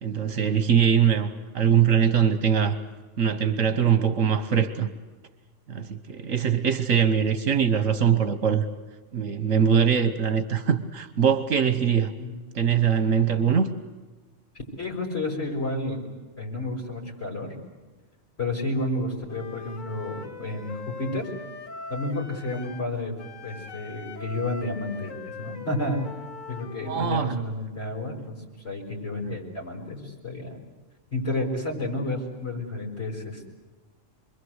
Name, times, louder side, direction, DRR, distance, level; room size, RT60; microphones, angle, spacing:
voice 1, 0.0-2.8 3.2-4.9 5.7-8.6 9.1-12.1 12.5-13.7 26.9-27.4, right 7 dB, 75° right, 10 dB, 1.6 m, -22 dB
voice 2, 14.8-16.1 16.4-17.5 18.4-21.3 21.9-26.0 26.5-28.4 28.6-30.6 31.1-33.5, left 2 dB, 55° left, 0 dB, 6.6 m, -31 dB
Wind instrument woodwind instrument, 19.3-22.9 23.2-27.1, left 4 dB, 85° left, 1.7 m, -41 dB
28.0 x 22.0 x 8.1 m, 1.3 s
omnidirectional pair, 1.3 m